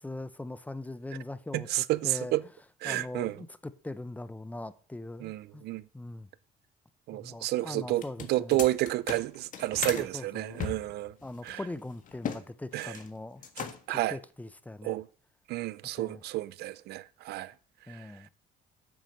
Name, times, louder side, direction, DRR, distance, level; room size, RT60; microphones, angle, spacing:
voice 1, 0.0-2.3 2.8-5.6 5.9-6.3 7.1-8.6 9.9-10.6 11.2-13.4 13.9-15.0 15.8-16.2 17.9-18.3, left 2 dB, 10° left, 0.6 m, -41 dB
voice 2, 1.5-2.4 2.8-3.4 5.2-5.8 7.1-8.0 8.3-11.1 11.4-11.6 12.7-13.0 13.6-14.2 14.8-15.1 15.5-17.5 17.9-18.1, right 16 dB, 75° right, 0.5 m, -31 dB
sound 1, 7.9-10.1 10.6-12.4 12.7-13.1 13.4-14.0, left 7 dB, 50° left, 1.5 m, -38 dB
8.7 x 6.2 x 6.5 m
cardioid pair, 110°, 17 cm